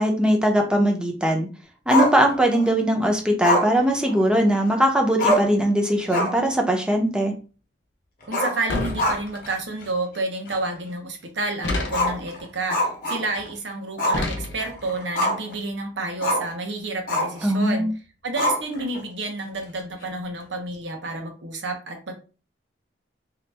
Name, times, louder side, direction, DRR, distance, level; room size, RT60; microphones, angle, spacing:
voice 1, 0.0-1.5 1.9-7.3 17.4-17.9, right 1 dB, 5° right, 2 dB, 0.6 m, -20 dB
Growling, 1.9-2.7 3.4-4.7 4.9-5.0 5.2-5.6 6.0-6.5 6.8-6.9 8.2-9.5 9.8-9.9 10.5-10.6 11.9-13.5 14.0-14.3 14.6-15.5 16.2-16.5 17.1-17.4 18.4-19.0, left 1 dB, 50° left, 0.8 m, -25 dB
voice 2, 8.3-17.9 18.2-22.1, right 2 dB, 80° right, 3 dB, 0.9 m, -30 dB
sound 1, 8.7-9.6 11.6-12.3 14.1-14.9, left 2 dB, 90° left, 0.7 m, -29 dB
2.9 x 2.5 x 3.3 m, 0.34 s
head